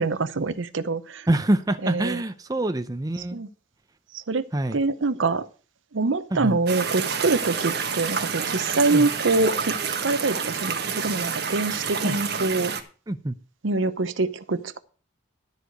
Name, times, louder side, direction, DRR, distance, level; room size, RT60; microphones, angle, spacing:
voice 1, 0.0-1.3 1.8-2.2 3.3-3.5 4.1-4.4 4.7-5.5 5.9-9.7 10.0-12.7 13.6-14.8, right 3 dB, 70° right, 14 dB, 0.8 m, -25 dB
voice 2, 1.3-3.4 4.5-4.8 6.3-6.6 8.9-9.1 12.0-12.2 13.1-13.4, right 1 dB, 20° right, 9 dB, 0.6 m, -25 dB
sound 1, 6.7-12.8, right 6 dB, 55° right, 1.5 m, -28 dB
12.5 x 4.9 x 7.9 m, 0.38 s
head